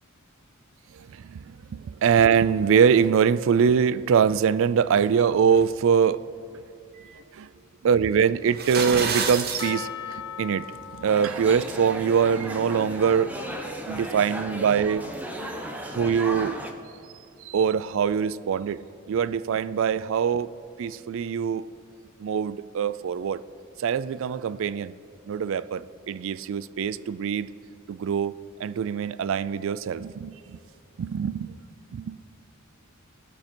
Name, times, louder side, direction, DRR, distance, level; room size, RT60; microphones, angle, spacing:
voice 1, 0.9-6.2 7.3-7.5 7.8-13.4 13.9-15.1 15.8-16.5 17.4-18.8 19.1-20.5 20.8-21.7 22.2-23.4 23.8-24.9 25.3-27.5 27.9-28.3 28.6-30.6 31.0-31.6 31.9-32.2, right 7 dB, 65° right, 0.3 m, -23 dB
sound 1, 8.5-9.7, right 5 dB, 50° right, 1.0 m, -27 dB
Percussion, 9.6-13.9 14.6-14.7, left 7 dB, 20° left, 0.5 m, -40 dB
sound 2, 11.1-16.7, equal, 10° right, 0.9 m, -35 dB
18.0 x 6.4 x 4.4 m
head